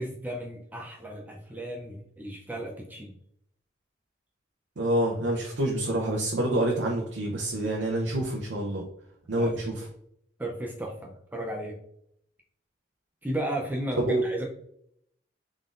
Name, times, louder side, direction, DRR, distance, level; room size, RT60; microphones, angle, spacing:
voice 1, 0.0-3.1 9.3-9.5 9.8-9.9 10.4-11.8 13.2-14.5, right 1 dB, 10° right, 0 dB, 0.4 m, -34 dB
voice 2, 4.8-8.8 9.3-9.8 14.0-14.2, right 1 dB, 80° right, 0 dB, 0.7 m, -27 dB
3.8 x 3.6 x 2.5 m, 0.71 s
head